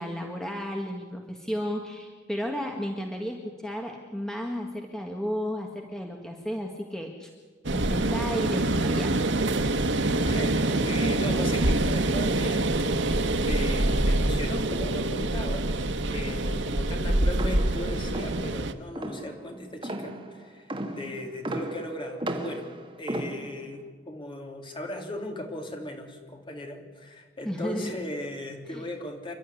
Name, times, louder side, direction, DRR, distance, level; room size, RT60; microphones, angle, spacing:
voice 1, 0.0-7.3 7.7-9.1 27.5-28.0 28.7-28.9, equal, 5° left, 1 dB, 1.7 m, -33 dB
sound 1, 7.6-18.7, right 2 dB, 85° right, 1.2 m, -25 dB
voice 2, 10.1-22.7 23.0-29.3, left 1 dB, 30° left, 3 dB, 3.1 m, -37 dB
sound 2, 17.3-23.8, right 1 dB, 30° right, 1.9 m, -36 dB
28.5 x 12.0 x 10.0 m, 1.4 s
head